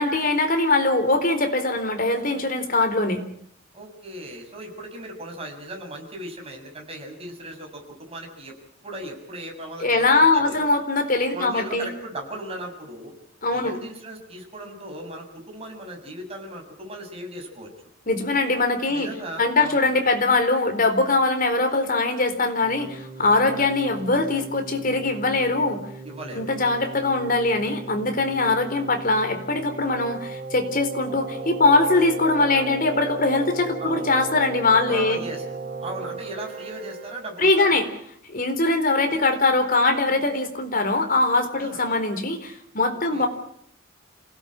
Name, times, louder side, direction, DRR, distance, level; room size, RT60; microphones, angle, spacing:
voice 1, 0.0-3.2 9.8-11.9 13.4-13.7 18.1-19.1 19.4-25.8 26.3-35.2 37.4-37.9 38.3-43.3, left 2 dB, 45° left, 6 dB, 4.2 m, -22 dB
voice 2, 3.7-8.5 8.8-10.6 11.3-13.1 13.5-17.7 18.9-19.9 23.4-23.6 26.0-26.5 33.8-34.1 34.8-35.4 35.8-37.7 39.1-39.2 41.6-41.8 42.9-43.3, right 1 dB, 30° right, 2 dB, 7.1 m, -37 dB
Keyboard (musical), 22.6-37.7, right 4 dB, 50° right, 5.0 m, -37 dB
27.5 x 18.0 x 9.0 m, 0.70 s
head